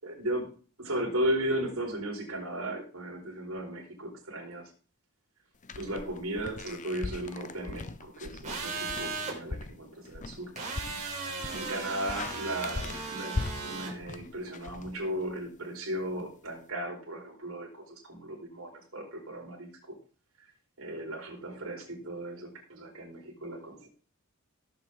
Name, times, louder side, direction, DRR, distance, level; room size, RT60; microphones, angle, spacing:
voice 1, 0.0-0.5 0.8-4.7 5.7-10.5 11.4-20.0 20.8-23.9, right 1 dB, 65° right, 0 dB, 4.8 m, -36 dB
sound 1, 5.6-15.5, left 3 dB, 35° left, 0.6 m, -40 dB
sound 2, 8.4-9.4 10.6-13.9, right 4 dB, 30° right, 5.0 m, -36 dB
17.5 x 7.9 x 3.8 m, 0.39 s
head